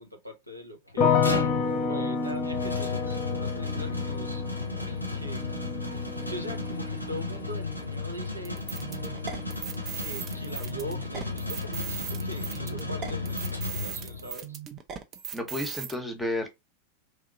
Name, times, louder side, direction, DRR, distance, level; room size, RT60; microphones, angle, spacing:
voice 1, 0.0-1.4 1.9-4.4 4.9-5.4 6.3-8.6 9.9-14.5, equal, 85° right, 0.8 m, -41 dB
sound 1, 0.9-14.4, left 3 dB, 90° left, 0.6 m, -34 dB
sound 2, 1.0-12.0 12.3-13.1, left 5 dB, 40° left, 0.7 m, -32 dB
sound 3, 8.4-15.9, right 9 dB, 30° right, 0.6 m, -38 dB
voice 2, 15.3-16.5, left 1 dB, 5° left, 0.9 m, -31 dB
3.2 x 2.8 x 2.5 m
figure-of-eight pair, 90°, 0 cm